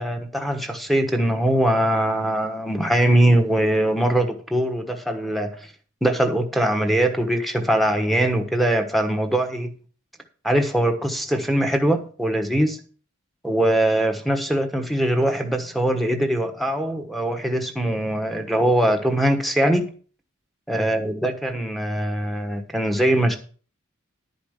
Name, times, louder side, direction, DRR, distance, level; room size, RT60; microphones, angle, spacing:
voice 1, 0.0-5.5 6.0-9.7 10.4-12.8 13.4-19.9 20.7-23.4, right 1 dB, ahead, 4 dB, 1.2 m, -22 dB
11.5 x 5.2 x 6.5 m, 0.42 s
head